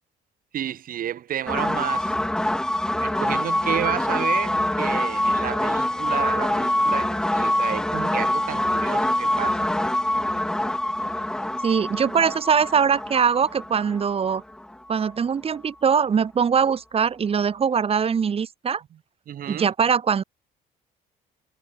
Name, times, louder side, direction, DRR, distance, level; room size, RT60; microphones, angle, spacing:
voice 1, 0.5-2.1 3.0-9.7 19.3-19.7, right 11 dB, 55° right, 3.4 m, -31 dB
sound 1, 1.5-15.1, left 1 dB, 5° left, 0.5 m, -25 dB
voice 2, 11.6-14.4 14.9-18.8 19.5-20.2, right 6 dB, 35° right, 1.9 m, -22 dB
cardioid pair, 110°, 17 cm